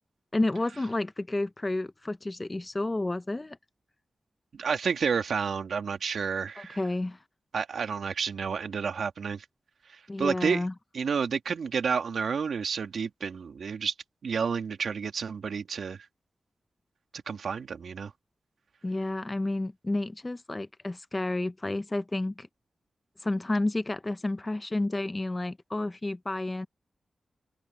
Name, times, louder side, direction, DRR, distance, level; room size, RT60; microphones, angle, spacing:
voice 1, 0.3-3.6 6.6-7.2 10.1-10.7 18.8-22.5 23.2-26.7, left 2 dB, 20° left, 0.6 m, -30 dB
voice 2, 4.5-6.8 7.5-9.4 9.9-10.6 10.9-13.9 14.2-16.0 17.3-18.1, right 6 dB, 85° right, 2.3 m, -30 dB
open air
wide cardioid pair, 140°, 0 cm